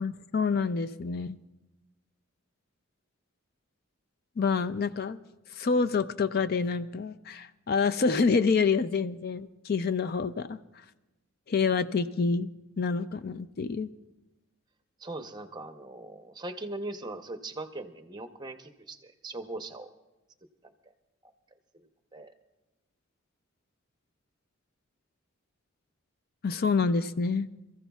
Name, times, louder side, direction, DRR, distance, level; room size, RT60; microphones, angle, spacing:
voice 1, 0.0-1.4 4.4-5.2 5.5-10.6 11.5-12.5 12.8-13.9 26.4-27.5, left 5 dB, 45° left, 12 dB, 0.4 m, -27 dB
voice 2, 15.0-19.9 21.2-21.3 21.7-21.9 22.1-22.3, right 2 dB, 20° right, 7 dB, 0.7 m, -40 dB
27.5 x 14.5 x 2.3 m, 1.0 s
head